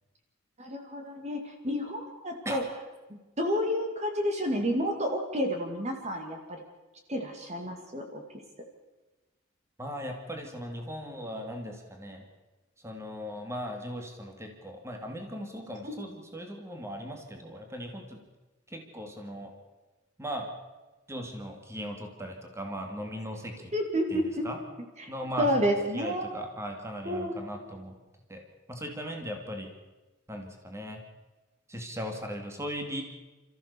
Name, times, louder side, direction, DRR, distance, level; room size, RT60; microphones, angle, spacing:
voice 1, 0.6-2.6 3.1-6.6 7.1-8.2 15.8-15.9 23.7-24.5 25.0-25.1 25.4-26.3 27.1-27.4, equal, 35° right, 3 dB, 2.5 m, -30 dB
voice 2, 9.8-12.3 12.8-18.2 18.7-19.5 20.2-20.5 21.1-23.7 24.1-24.6 25.1-28.0 28.3-28.4 28.7-29.7 30.3-31.0 31.7-33.0, equal, 15° right, 3 dB, 2.7 m, -38 dB
28.0 x 14.5 x 7.0 m, 1.2 s
head